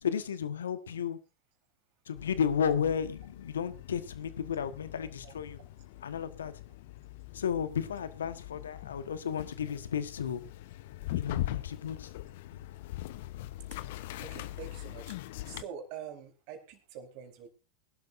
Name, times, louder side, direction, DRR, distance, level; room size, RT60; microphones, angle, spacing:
voice 1, 0.0-1.2 2.1-5.6 6.0-6.5 7.3-10.4 11.1-12.1, left 7 dB, 80° left, 1.4 m, -33 dB
sound 1, 2.2-15.6, left 15 dB, 60° left, 0.9 m, -42 dB
voice 2, 14.2-15.2 15.5-17.5, right 7 dB, 55° right, 4.0 m, -45 dB
22.5 x 12.0 x 2.6 m
hypercardioid pair, 90°, 0 cm